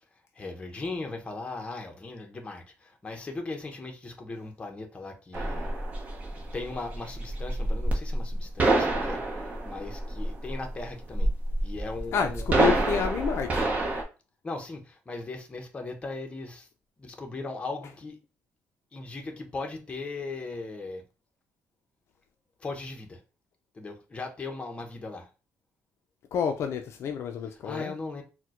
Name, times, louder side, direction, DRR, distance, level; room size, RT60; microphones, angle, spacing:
voice 1, 0.4-5.7 6.5-11.3 11.6-12.8 14.4-16.7 17.0-18.2 18.9-21.0 22.6-23.2 23.7-25.3 27.6-28.2, left 3 dB, 25° left, 0.7 m, -38 dB
sound 1, 5.3-14.0, right 2 dB, 30° right, 0.8 m, -28 dB
voice 2, 12.1-13.7 26.3-28.0, left 7 dB, 60° left, 0.3 m, -29 dB
4.3 x 2.1 x 2.4 m
cardioid pair, 125°, 5 cm